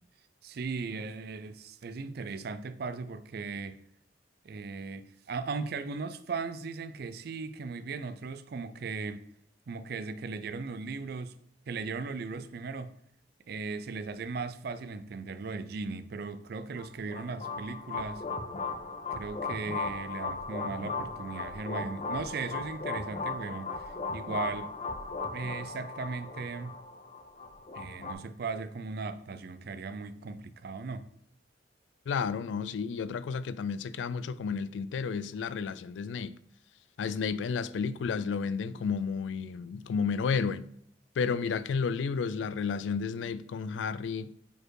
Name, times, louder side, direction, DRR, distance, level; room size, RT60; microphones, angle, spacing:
voice 1, 0.4-3.8 4.4-9.3 9.7-11.3 11.7-12.9 13.5-18.2 19.1-24.7 25.3-26.7 27.7-31.1, right 4 dB, 60° right, 0.4 m, -37 dB
sound 1, 16.8-28.1, left 4 dB, 35° left, 0.6 m, -37 dB
voice 2, 32.1-36.3 37.0-40.6 41.2-44.3, left 5 dB, 85° left, 0.3 m, -32 dB
5.0 x 4.3 x 4.6 m
head